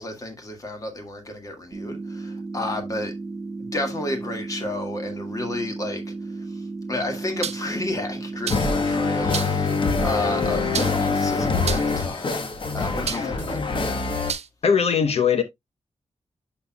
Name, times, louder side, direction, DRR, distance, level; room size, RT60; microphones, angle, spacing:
voice 1, 0.0-3.1 3.6-12.4 12.7-13.6, left 1 dB, 30° left, 1.9 m, -32 dB
sound 1, 1.7-11.7, right 3 dB, 35° right, 1.5 m, -34 dB
sound 2, 7.4-7.8 8.5-8.8 9.3-9.7 10.7-11.2 11.6-12.0 13.1-13.4 14.3-14.5, right 7 dB, 70° right, 0.6 m, -30 dB
sound 3, 8.5-14.3, left 4 dB, 45° left, 1.3 m, -24 dB
voice 2, 14.6-15.4, left 7 dB, 65° left, 1.0 m, -19 dB
12.5 x 4.5 x 2.3 m
wide cardioid pair, 165°, 11 cm